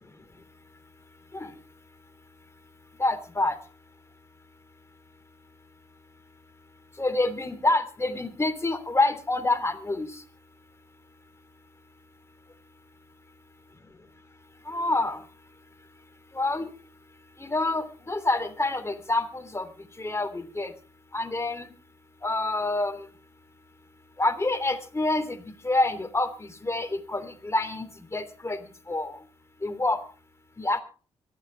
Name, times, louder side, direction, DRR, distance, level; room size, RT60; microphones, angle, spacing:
voice 1, 3.0-3.5 7.0-10.2 14.7-15.2 16.3-16.7 17.4-19.7 20.0-20.7 21.1-21.7 22.2-23.1 24.2-27.9 28.1-28.6 28.9-29.2 29.6-30.0 30.6-30.8, left 2 dB, 20° left, 8 dB, 3.1 m, -27 dB
25.5 x 9.0 x 3.4 m, 0.37 s
hypercardioid pair, 50°, 13 cm